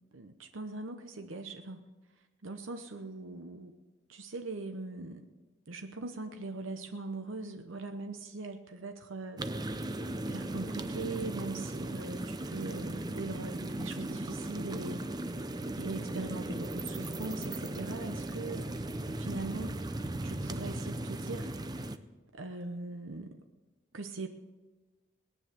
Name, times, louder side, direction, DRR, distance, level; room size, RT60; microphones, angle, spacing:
voice 1, 0.1-1.8 2.4-3.7 4.1-5.3 5.7-9.4 10.3-15.0 15.7-19.8 20.2-21.8 22.3-23.4 23.9-24.3, right 3 dB, 70° right, 6 dB, 0.9 m, -41 dB
sound 1, 9.4-22.0, right 1 dB, 20° right, 0.6 m, -37 dB
19.0 x 9.6 x 6.7 m, 1.2 s
head